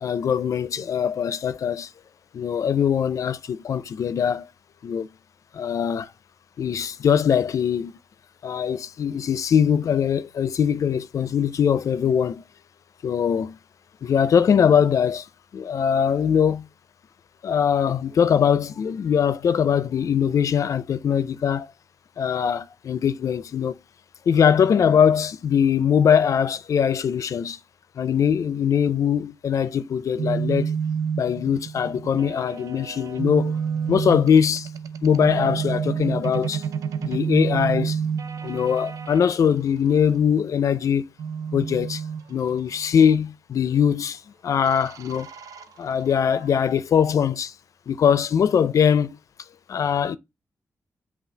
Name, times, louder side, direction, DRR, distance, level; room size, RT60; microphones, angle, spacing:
voice 1, 0.0-1.9 2.3-4.5 4.8-5.1 5.5-6.1 6.6-7.9 8.4-12.4 13.0-13.6 14.0-15.3 15.5-16.7 17.4-21.7 22.2-23.8 24.3-27.6 28.0-30.7 31.2-33.6 33.9-34.7 35.0-36.6 37.0-38.0 38.4-41.1 41.5-42.0 42.3-45.3 45.8-47.5 47.9-49.2 49.7-50.2, left 7 dB, 75° left, 0.4 m, -21 dB
sound 1, 30.2-39.2 41.2-43.1 44.6-46.6, right 6 dB, 90° right, 0.4 m, -29 dB
5.6 x 2.3 x 3.2 m
cardioid pair, 55°, 6 cm